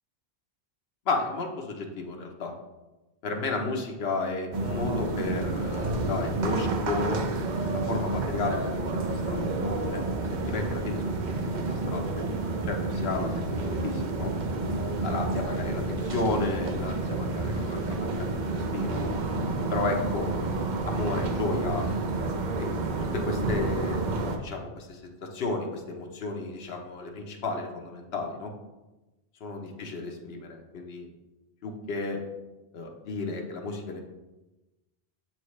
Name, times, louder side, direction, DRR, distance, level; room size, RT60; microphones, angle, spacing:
voice 1, 1.1-2.5 3.2-7.3 7.7-10.0 10.3-11.2 11.5-12.2 12.7-14.3 15.0-19.0 19.7-20.3 20.9-21.9 22.6-22.7 23.1-28.5 29.4-31.1 31.6-32.2 32.7-34.0, left 3 dB, 75° left, 2 dB, 1.0 m, -33 dB
sound 1, 4.5-24.4, right 2 dB, 55° right, 0.7 m, -30 dB
7.1 x 4.4 x 3.1 m, 1.1 s
omnidirectional pair, 1.0 m